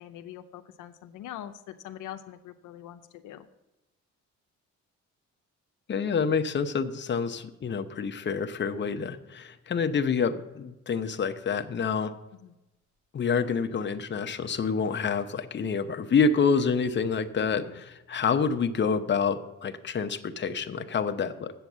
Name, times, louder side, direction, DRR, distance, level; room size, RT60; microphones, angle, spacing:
voice 1, 0.0-3.5 12.4-12.5 17.4-17.8, left 11 dB, 90° left, 8 dB, 0.6 m, -43 dB
voice 2, 5.9-12.1 13.1-17.8 18.1-21.5, left 5 dB, 35° left, 8 dB, 0.8 m, -27 dB
7.9 x 7.8 x 7.3 m, 0.97 s
cardioid pair, 90°, 30 cm